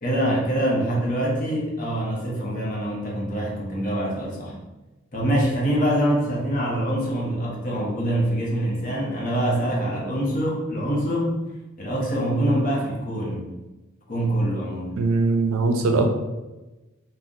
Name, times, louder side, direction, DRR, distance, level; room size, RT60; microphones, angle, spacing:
voice 1, 0.0-4.5 5.1-11.4 11.8-13.5 14.1-15.0, right 1 dB, 40° left, -2 dB, 0.7 m, -24 dB
voice 2, 15.0-16.1, right 3 dB, 90° right, 5 dB, 0.4 m, -21 dB
2.5 x 2.1 x 3.6 m, 1.1 s
head